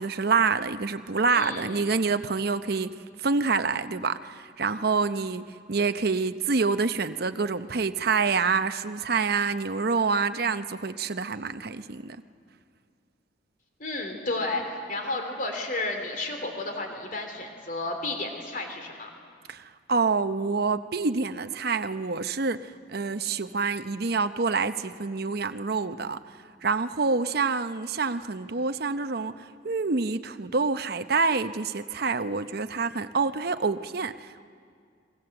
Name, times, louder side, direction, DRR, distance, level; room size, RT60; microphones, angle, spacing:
voice 1, 0.0-12.2 19.5-26.2 26.6-34.4, right 4 dB, 55° right, 10 dB, 0.8 m, -27 dB
voice 2, 1.3-1.8 13.8-19.1, left 2 dB, 45° left, 4 dB, 3.2 m, -32 dB
30.0 x 22.0 x 7.8 m, 2.2 s
head